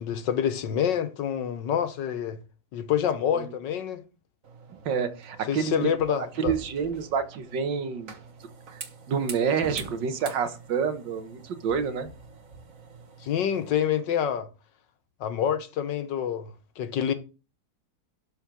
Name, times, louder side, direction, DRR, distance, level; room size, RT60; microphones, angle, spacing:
voice 1, 0.0-2.4 2.7-4.0 5.5-6.5 13.2-14.5 15.2-17.1, left 9 dB, 85° left, 1.7 m, -27 dB
sound 1, 4.4-13.7, right 4 dB, 50° right, 1.6 m, -44 dB
voice 2, 4.9-8.1 8.7-8.8 9.1-12.1, right 6 dB, 90° right, 1.9 m, -28 dB
12.0 x 4.5 x 6.1 m
omnidirectional pair, 1.9 m